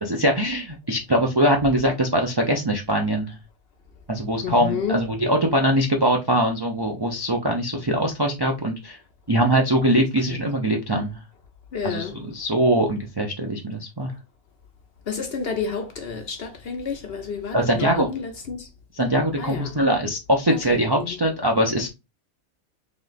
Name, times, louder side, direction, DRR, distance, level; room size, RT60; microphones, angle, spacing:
voice 1, 0.0-3.4 4.1-9.0 9.3-11.2 11.8-14.1 17.5-18.1 18.9-21.9, right 1 dB, 35° right, 0.3 m, -22 dB
voice 2, 4.4-5.0 11.7-12.1 15.1-18.6 19.4-19.7, left 5 dB, 55° left, 0.8 m, -29 dB
3.3 x 3.1 x 3.9 m
omnidirectional pair, 1.5 m